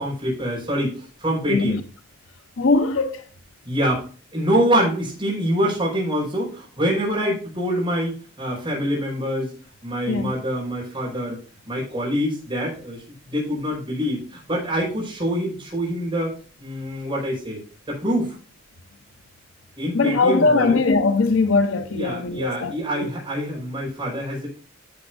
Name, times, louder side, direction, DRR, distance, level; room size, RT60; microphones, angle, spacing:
voice 1, 0.0-1.8 3.7-9.5 9.8-11.4 11.7-17.6 17.9-18.4 19.8-20.8 21.9-24.5, equal, 25° right, 5.2 m, -25 dB
voice 2, 1.5-1.8 2.6-3.2 10.1-10.3 19.9-23.1, left 3 dB, 70° left, 0.8 m, -20 dB
10.5 x 8.6 x 2.5 m
head